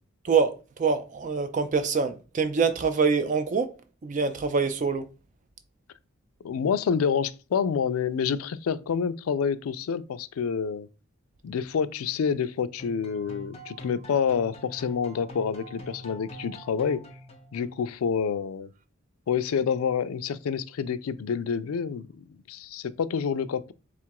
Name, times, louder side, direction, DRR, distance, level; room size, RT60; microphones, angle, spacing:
voice 1, 0.2-3.7 4.0-5.0, right 5 dB, 35° right, 0.3 m, -25 dB
voice 2, 6.4-10.9 11.4-17.0 17.5-18.7 19.3-23.7, left 6 dB, 85° left, 0.4 m, -28 dB
sound 1, 12.8-18.0, equal, 30° left, 0.6 m, -44 dB
3.7 x 2.4 x 4.5 m
head